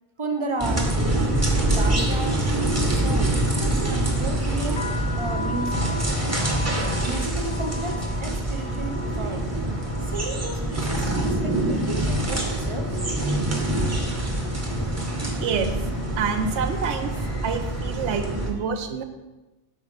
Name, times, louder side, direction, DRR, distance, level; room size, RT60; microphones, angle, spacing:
voice 1, 0.2-0.9 1.6-4.9 5.1-9.5 10.0-12.9, right 2 dB, 55° right, 4 dB, 0.3 m, -33 dB
sound 1, 0.6-18.5, right 1 dB, 15° right, 0.7 m, -25 dB
sound 2, 2.2-17.4, right 1 dB, 70° left, 1.2 m, -41 dB
sound 3, 4.7-12.6 12.9-13.5 14.2-14.5 14.7-16.2, left 3 dB, 50° left, 0.8 m, -39 dB
voice 2, 15.3-15.9 16.2-17.1 17.4-19.0, right 6 dB, 85° right, 7 dB, 0.9 m, -27 dB
5.3 x 4.0 x 5.0 m, 1.1 s
omnidirectional pair, 1.1 m